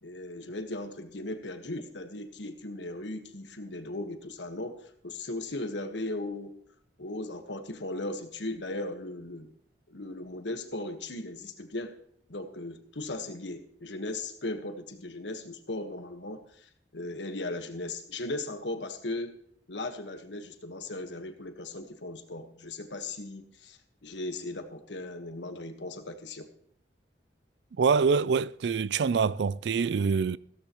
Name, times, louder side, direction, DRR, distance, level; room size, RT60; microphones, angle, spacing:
voice 1, 0.0-6.5 7.0-9.5 9.9-12.0 12.3-19.4 19.7-26.5, left 2 dB, 85° left, 1.4 m, -37 dB
voice 2, 27.8-30.4, right 5 dB, 75° right, 0.4 m, -25 dB
15.5 x 13.5 x 3.1 m
head